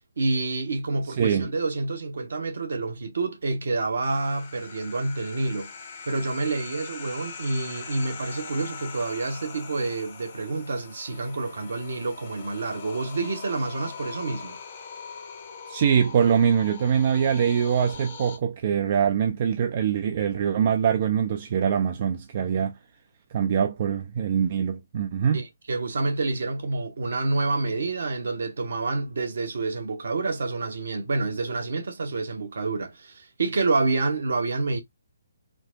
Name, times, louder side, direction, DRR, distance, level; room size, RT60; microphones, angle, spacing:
voice 1, 0.2-5.7 6.1-14.6 25.3-34.8, right 3 dB, 60° right, 0.9 m, -28 dB
voice 2, 1.2-1.5 15.7-22.7 23.3-25.4, right 8 dB, 40° right, 0.4 m, -23 dB
sound 1, 4.0-18.4, left 5 dB, 45° left, 1.0 m, -42 dB
4.4 x 2.0 x 2.8 m
figure-of-eight pair, 135°, 0 cm